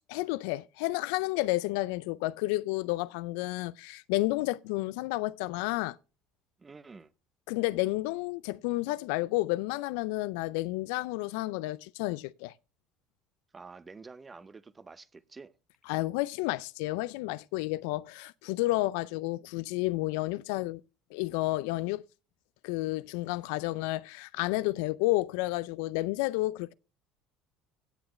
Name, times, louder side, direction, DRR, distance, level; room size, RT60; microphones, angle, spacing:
voice 1, 0.0-6.0 7.5-12.5 15.9-20.8 21.1-22.0 22.6-26.7, left 19 dB, 75° left, 0.4 m, -31 dB
voice 2, 6.6-7.1 13.5-15.5, right 4 dB, 25° right, 0.8 m, -48 dB
16.0 x 7.8 x 3.2 m
hypercardioid pair, 75°, 0 cm